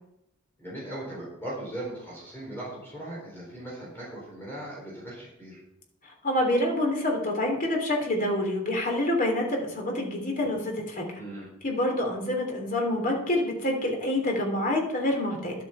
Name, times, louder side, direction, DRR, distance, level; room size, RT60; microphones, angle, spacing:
voice 1, 0.6-5.6 11.2-11.5, right 1 dB, 10° left, -6 dB, 4.3 m, -38 dB
voice 2, 6.0-11.2 11.6-15.6, left 1 dB, 40° left, 1 dB, 3.1 m, -27 dB
11.5 x 8.4 x 5.6 m, 0.82 s
head